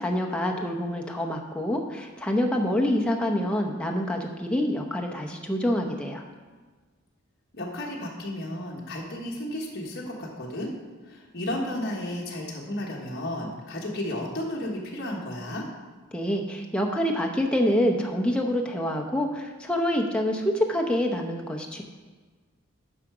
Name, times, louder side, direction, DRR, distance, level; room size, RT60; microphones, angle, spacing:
voice 1, 0.0-6.2 16.1-21.8, left 1 dB, 5° left, 1 dB, 0.8 m, -26 dB
voice 2, 7.5-10.7 11.0-15.6, left 1 dB, 50° left, -3 dB, 1.4 m, -33 dB
9.8 x 5.8 x 4.9 m, 1.4 s
head